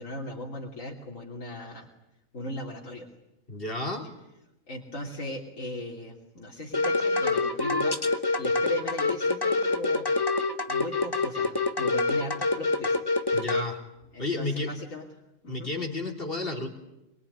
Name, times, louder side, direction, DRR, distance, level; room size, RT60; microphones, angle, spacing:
voice 1, 0.0-1.9 2.3-3.1 4.7-10.1 10.7-13.0 14.1-15.1 15.4-15.7, left 1 dB, 80° left, -2 dB, 3.5 m, -38 dB
voice 2, 3.5-4.1 13.3-13.8 14.2-14.7 15.5-16.7, left 2 dB, 45° left, 3 dB, 3.7 m, -31 dB
sound 1, 6.7-13.6, left 3 dB, 20° left, 1.2 m, -26 dB
24.0 x 23.0 x 10.0 m, 0.89 s
omnidirectional pair, 1.3 m